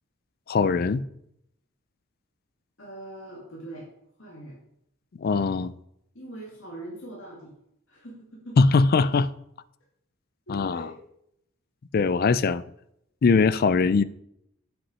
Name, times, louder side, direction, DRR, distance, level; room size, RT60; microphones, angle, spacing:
voice 1, 0.5-1.0 5.2-5.7 8.6-9.3 10.5-10.9 11.9-12.6 13.2-14.0, left 4 dB, 45° left, 0.3 m, -21 dB
voice 2, 2.8-3.9 4.2-4.6 6.1-7.5 7.9-8.7 10.5-10.9, right 1 dB, 60° left, 2.0 m, -42 dB
8.4 x 5.8 x 5.5 m
head